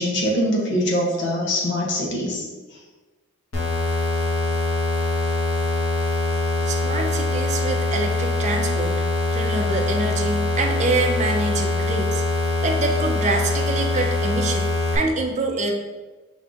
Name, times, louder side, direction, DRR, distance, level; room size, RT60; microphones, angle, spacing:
voice 1, 0.0-2.5, equal, 60° left, -1 dB, 0.9 m, -23 dB
sound 1, 3.5-15.0, left 2 dB, 90° left, 1.2 m, -23 dB
voice 2, 6.7-9.0 9.3-15.7, right 2 dB, 35° right, 2 dB, 0.5 m, -26 dB
5.4 x 3.7 x 2.5 m, 1.2 s
head